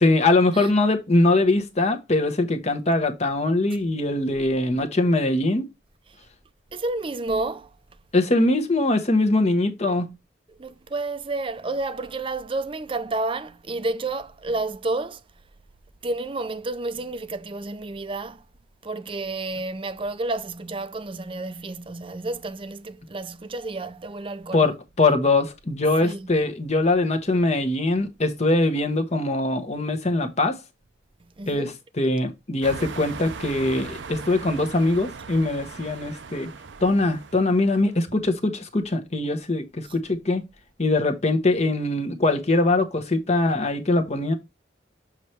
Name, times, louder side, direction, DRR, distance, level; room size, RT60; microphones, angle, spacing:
voice 1, 0.0-5.7 8.1-10.1 24.5-30.6 31.5-36.5 36.8-40.4 40.8-44.3, left 2 dB, 40° left, 1.0 m, -22 dB
voice 2, 6.7-7.7 10.6-15.2 16.0-18.4 18.8-24.7 26.0-26.3 31.4-31.7 39.8-39.9, right 2 dB, 30° right, 0.6 m, -30 dB
sound 1, 32.6-38.0, right 5 dB, 85° right, 0.7 m, -39 dB
7.3 x 3.1 x 4.4 m
head